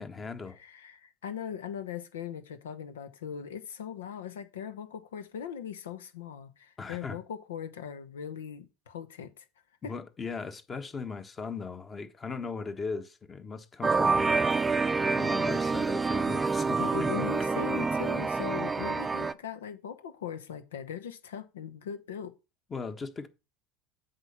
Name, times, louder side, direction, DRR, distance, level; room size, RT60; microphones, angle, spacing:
voice 1, 0.0-0.6 6.8-7.2 9.8-14.4 15.0-17.3 22.7-23.3, left 4 dB, 30° left, 1.3 m, -38 dB
voice 2, 0.6-9.4 9.8-9.9 16.8-22.3, left 8 dB, 80° left, 1.0 m, -39 dB
sound 1, 13.8-19.3, right 4 dB, 20° right, 0.6 m, -27 dB
8.1 x 5.2 x 5.6 m
hypercardioid pair, 75°, 0 cm